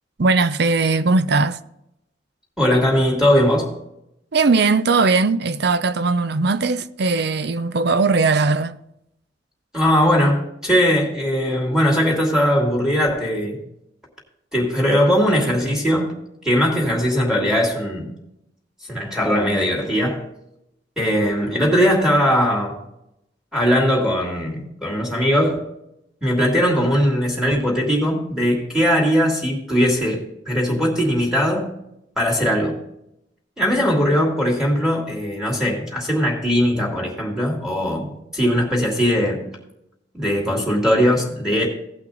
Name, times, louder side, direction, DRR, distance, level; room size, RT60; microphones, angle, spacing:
voice 1, 0.2-1.6 4.3-8.8, right 3 dB, 60° right, 0.6 m, -19 dB
voice 2, 2.6-3.7 9.7-13.6 14.5-16.1 16.4-18.1 18.9-20.3 21.0-22.8 23.5-25.6 26.2-31.7 32.2-32.8 33.6-39.4 40.1-41.7, equal, 5° right, 2.8 m, -19 dB
17.0 x 5.8 x 3.9 m
head